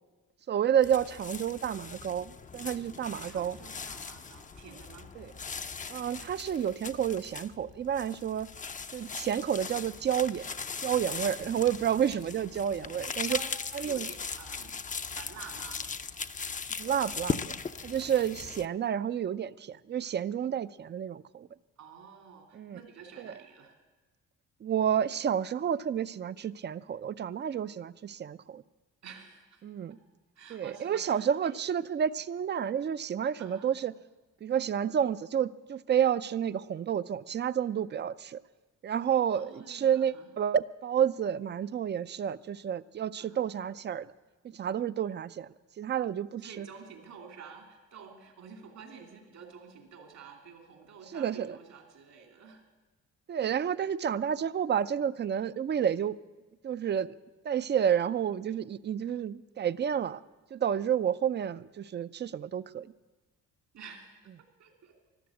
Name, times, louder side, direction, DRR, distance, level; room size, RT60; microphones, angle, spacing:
voice 1, 0.5-3.6 5.2-5.3 5.9-8.5 8.9-10.5 10.8-13.4 13.7-14.1 16.8-17.5 17.8-21.5 22.5-22.8 23.2-23.3 24.6-28.6 29.6-30.0 30.5-33.9 34.4-38.4 38.8-44.1 44.4-45.5 45.8-46.7 51.1-51.6 53.3-56.2 56.6-57.1 57.4-60.2 60.5-62.9, right 9 dB, 35° right, 16 dB, 0.5 m, -30 dB
sound 1, 0.8-18.7, left 5 dB, 25° left, 0.6 m, -39 dB
voice 2, 3.2-5.1 13.2-13.5 13.8-14.8 15.1-15.9 21.8-23.8 29.0-29.6 30.3-31.6 33.4-33.7 39.3-40.3 43.2-43.5 46.4-52.6 63.7-65.0, right 6 dB, 70° right, 3 dB, 2.7 m, -50 dB
14.0 x 12.0 x 8.3 m, 1.2 s
cardioid pair, 90°, 30 cm